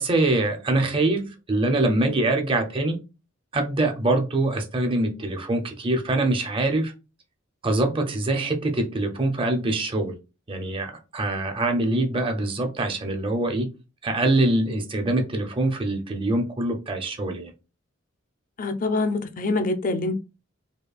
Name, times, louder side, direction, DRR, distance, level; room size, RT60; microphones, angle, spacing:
voice 1, 0.0-3.0 3.5-6.9 7.6-10.1 10.5-13.7 14.0-17.5, right 2 dB, 25° right, 0.6 m, -24 dB
voice 2, 18.6-20.1, left 3 dB, 40° left, 0.4 m, -25 dB
5.1 x 2.3 x 2.3 m
head